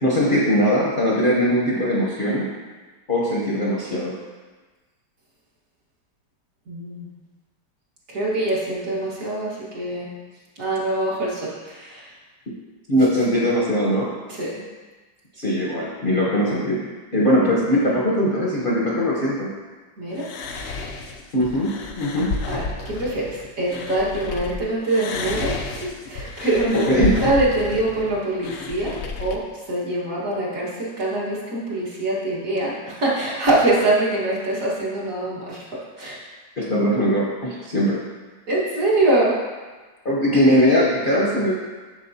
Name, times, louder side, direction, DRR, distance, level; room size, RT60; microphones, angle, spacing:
voice 1, 0.0-2.5 3.1-4.2 12.9-14.1 15.4-19.5 21.3-22.3 26.7-27.2 36.6-38.0 40.0-41.5, equal, 40° left, -6 dB, 0.9 m, -20 dB
voice 2, 6.7-7.1 8.1-10.1 10.6-12.1 13.0-13.1 14.3-14.5 20.0-20.3 22.5-26.9 27.2-29.4 29.7-35.6 36.0-36.2 38.5-39.3, right 2 dB, 50° right, -6 dB, 1.9 m, -24 dB
sound 1, 20.2-24.5 24.9-29.4, left 3 dB, 85° left, 0.6 m, -31 dB
7.4 x 6.5 x 2.7 m, 1.3 s
omnidirectional pair, 1.9 m